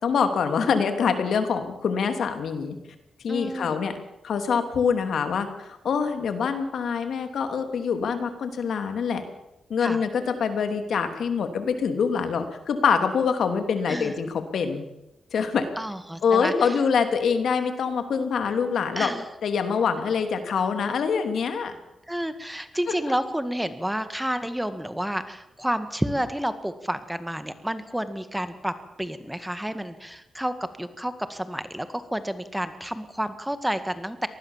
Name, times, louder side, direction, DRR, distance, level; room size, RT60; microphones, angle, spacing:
voice 1, 0.0-2.8 3.2-4.0 4.2-9.2 9.7-14.8 15.3-15.7 16.2-19.1 19.4-21.7 22.9-23.0, left 6 dB, 80° left, 7 dB, 3.0 m, -25 dB
voice 2, 3.3-3.7 9.8-10.0 13.9-14.1 15.8-16.7 19.0-19.2 22.1-28.7 29.0-34.3, equal, 5° right, 10 dB, 1.9 m, -30 dB
25.5 x 19.5 x 7.4 m, 0.91 s
cardioid pair, 85°, 0 cm